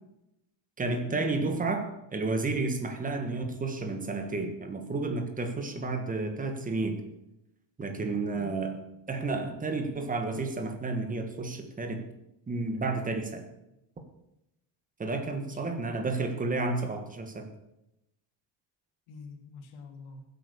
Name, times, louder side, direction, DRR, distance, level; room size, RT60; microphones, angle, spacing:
voice 1, 0.8-7.0 7.8-8.8 9.1-12.0 12.5-13.5 15.0-17.5, right 3 dB, 15° right, 6 dB, 1.5 m, -31 dB
voice 2, 15.1-16.2 19.1-20.3, left 5 dB, 80° left, 4 dB, 2.7 m, -45 dB
15.5 x 8.3 x 6.9 m, 0.88 s
cardioid pair, 170°, 50 cm